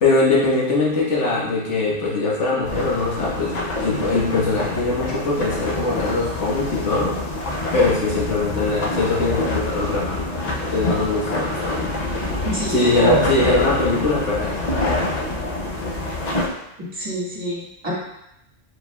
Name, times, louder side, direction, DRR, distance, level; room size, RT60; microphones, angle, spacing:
voice 1, 0.0-7.2 7.7-10.3 10.5-12.0 12.7-15.1, left 3 dB, 70° left, -6 dB, 1.5 m, -22 dB
sound 1, 2.6-16.5, left 2 dB, 45° left, 0.6 m, -26 dB
voice 2, 12.4-13.2 16.9-17.9, right 1 dB, 30° right, -7 dB, 1.5 m, -25 dB
4.6 x 4.2 x 2.2 m, 0.82 s
omnidirectional pair, 1.2 m